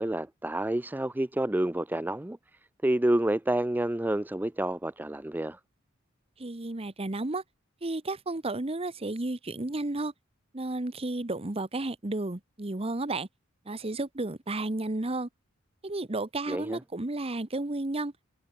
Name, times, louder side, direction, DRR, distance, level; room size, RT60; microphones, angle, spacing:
voice 1, 0.0-2.4 2.8-5.6 16.5-16.8, right 1 dB, 10° right, 0.5 m, -28 dB
voice 2, 6.4-7.4 7.8-10.1 10.5-13.3 13.7-15.3 15.8-18.1, right 2 dB, 30° right, 1.0 m, -32 dB
head